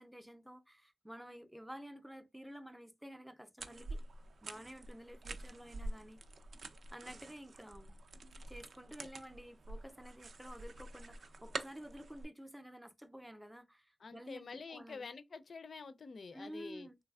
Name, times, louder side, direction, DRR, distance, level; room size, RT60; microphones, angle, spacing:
voice 1, 0.0-4.0 4.4-6.2 6.9-8.0 8.5-15.1 16.3-17.0, equal, 5° right, 0.4 m, -51 dB
sound 1, 3.6-12.2, right 2 dB, 70° right, 0.4 m, -47 dB
voice 2, 14.0-16.9, left 4 dB, 65° left, 0.4 m, -48 dB
3.2 x 3.0 x 2.3 m
wide cardioid pair, 120°, 0 cm